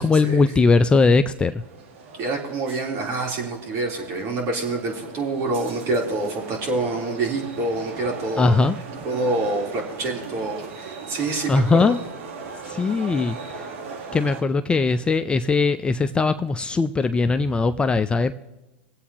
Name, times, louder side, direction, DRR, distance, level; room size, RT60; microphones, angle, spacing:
voice 1, 0.0-1.6 8.4-8.8 11.5-12.0 12.7-13.6 14.1-18.3, left 4 dB, 15° left, 10 dB, 0.4 m, -20 dB
sound 1, 1.6-14.4, right 4 dB, 70° right, 1.5 m, -39 dB
voice 2, 2.2-8.5 9.0-12.0, right 2 dB, 45° right, -1 dB, 3.3 m, -26 dB
24.0 x 8.2 x 2.9 m, 1.0 s
hypercardioid pair, 115°, 7 cm